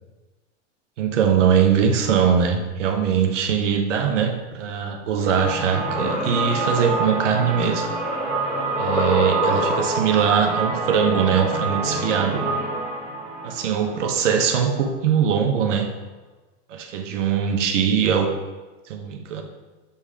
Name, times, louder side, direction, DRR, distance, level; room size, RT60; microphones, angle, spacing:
voice 1, 1.0-7.9 8.8-12.5 13.4-15.9 16.7-18.3 18.9-19.4, right 7 dB, 75° right, 4 dB, 1.1 m, -21 dB
sound 1, 5.1-10.2, left 1 dB, 10° left, 1.7 m, -28 dB
sound 2, 5.3-15.0, right 4 dB, 55° right, 2.0 m, -28 dB
7.0 x 3.4 x 4.8 m, 1.2 s
hypercardioid pair, 110°, 37 cm